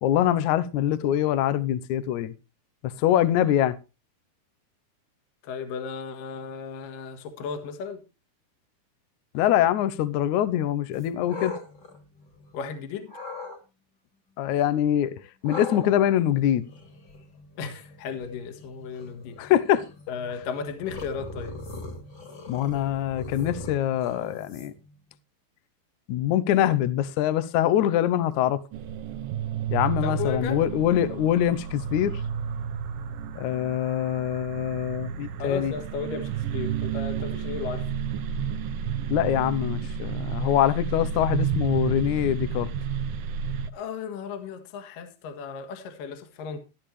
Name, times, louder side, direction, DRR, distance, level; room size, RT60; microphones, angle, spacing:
voice 1, 0.0-2.3 2.8-3.8 9.3-11.6 14.4-16.7 19.4-20.1 22.5-24.7 26.1-28.6 29.7-32.2 33.3-35.7 39.1-42.7, left 11 dB, 85° left, 1.7 m, -24 dB
voice 2, 5.4-8.0 12.5-13.1 17.6-19.5 20.1-21.6 30.0-30.7 35.4-37.9 43.7-46.6, left 5 dB, 60° left, 3.0 m, -35 dB
sound 1, 10.9-12.7 13.1-13.6 15.4-24.9, left 3 dB, 35° left, 2.2 m, -40 dB
sound 2, 28.7-43.7, right 8 dB, 75° right, 2.4 m, -31 dB
14.5 x 12.0 x 3.2 m
omnidirectional pair, 4.7 m